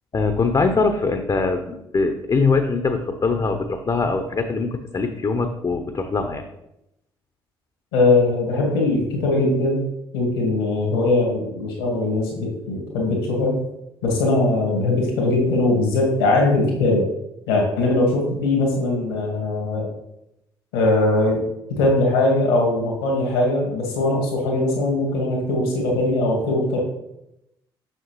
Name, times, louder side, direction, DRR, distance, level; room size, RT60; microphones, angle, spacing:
voice 1, 0.1-6.4, left 4 dB, 30° left, 6 dB, 0.8 m, -22 dB
voice 2, 7.9-9.9 10.1-13.7 14.0-17.1 17.5-19.9 20.7-21.4 21.7-26.8, left 2 dB, 75° left, -1 dB, 1.9 m, -20 dB
6.7 x 6.4 x 3.1 m, 0.85 s
figure-of-eight pair, 45°, 12 cm